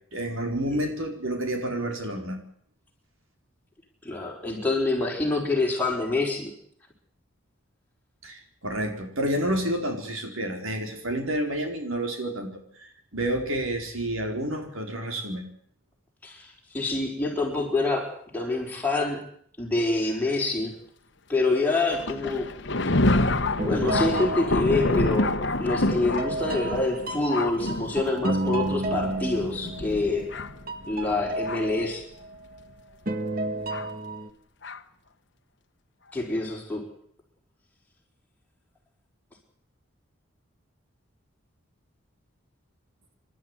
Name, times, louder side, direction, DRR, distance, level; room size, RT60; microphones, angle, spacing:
voice 1, 0.1-2.4 8.2-15.5, right 1 dB, 80° right, 4 dB, 4.4 m, -29 dB
voice 2, 4.0-6.5 16.2-16.5 16.7-19.2 19.6-20.7 21.3-22.5 23.6-25.3 25.6-30.3 30.9-32.0 36.1-36.8, left 2 dB, 10° left, -2 dB, 5.1 m, -26 dB
Thunder, 21.9-31.8 32.6-32.7 33.7-33.9 34.6-34.8, left 2 dB, 55° left, 1.2 m, -28 dB
sound 1, 23.6-25.5 25.9-30.4 30.7-32.6 33.1-34.3, right 2 dB, 45° right, 1.6 m, -32 dB
27.0 x 12.5 x 9.8 m, 0.64 s
head